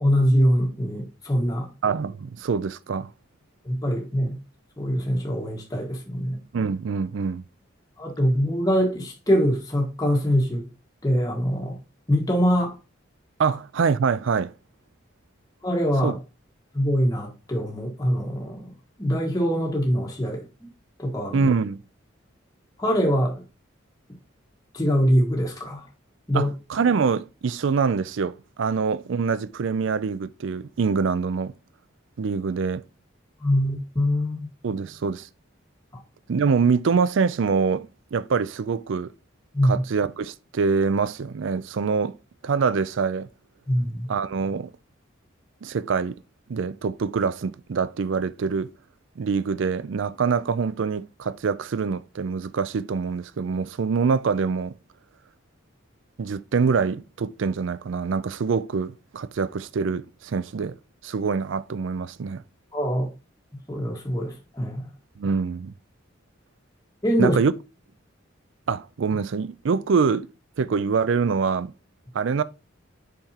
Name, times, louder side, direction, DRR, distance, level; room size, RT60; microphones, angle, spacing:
voice 1, 0.0-1.7 3.6-4.4 4.8-6.4 8.0-10.7 11.0-11.8 12.1-12.8 15.6-16.1 16.7-18.7 19.0-20.7 21.0-21.5 22.8-23.4 24.7-25.9 26.3-26.5 33.4-34.5 39.5-39.8 43.7-44.1 62.7-63.1 63.7-64.9 67.0-67.4, equal, 20° left, 1.6 m, -23 dB
voice 2, 1.8-3.1 6.5-7.4 13.4-14.5 16.0-16.1 21.3-21.8 26.3-31.5 32.2-32.8 34.6-35.3 36.3-39.1 39.6-42.2 42.4-43.3 44.1-44.7 45.6-46.2 46.5-48.7 49.2-54.7 56.2-60.8 61.0-62.4 65.2-65.7 67.2-67.5 68.7-70.3 70.6-71.7 72.1-72.4, right 5 dB, 70° right, 0.4 m, -25 dB
7.0 x 5.8 x 2.9 m
head